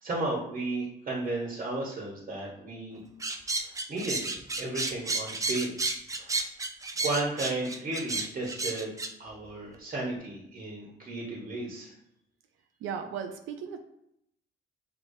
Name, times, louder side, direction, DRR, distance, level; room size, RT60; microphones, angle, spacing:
voice 1, 0.0-3.0 3.6-4.3 4.6-5.7 6.2-6.5 7.0-8.9 9.2-11.9, right 2 dB, 40° right, -3 dB, 1.2 m, -34 dB
sound 1, 3.2-9.1, right 3 dB, 15° right, 0.4 m, -32 dB
voice 2, 12.8-13.8, right 7 dB, 80° right, 5 dB, 0.5 m, -36 dB
6.5 x 2.8 x 2.7 m, 0.77 s
cardioid pair, 90°, 20 cm